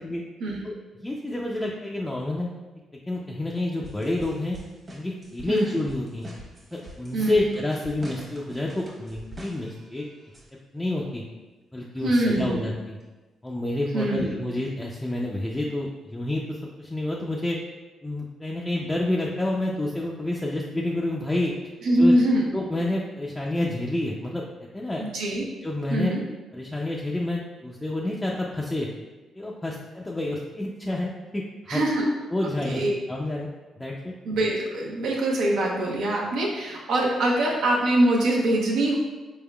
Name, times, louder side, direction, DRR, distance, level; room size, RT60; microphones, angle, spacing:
voice 1, 0.6-2.5 3.1-4.6 4.9-6.3 7.0-10.1 10.7-11.2 11.7-13.0 13.4-17.6 18.0-21.5 22.0-22.1 22.5-24.4 24.7-25.0 25.6-26.1 26.5-28.9 29.4-31.8 32.3-32.8 33.1-33.5 33.8-34.1, left 1 dB, 15° left, -3 dB, 0.4 m, -28 dB
sound 1, 3.8-10.5 12.2-12.5 13.0-13.1 14.2-14.3 15.8-15.9, right 1 dB, 35° right, 1.1 m, -44 dB
voice 2, 7.1-7.5 12.0-12.6 13.9-14.3 21.8-22.5 25.0-25.4 25.9-26.2 31.7-32.0 32.6-32.9 34.2-39.0, right 1 dB, 80° right, -2 dB, 0.9 m, -23 dB
4.3 x 3.5 x 2.3 m, 1.2 s
cardioid pair, 90°, 0 cm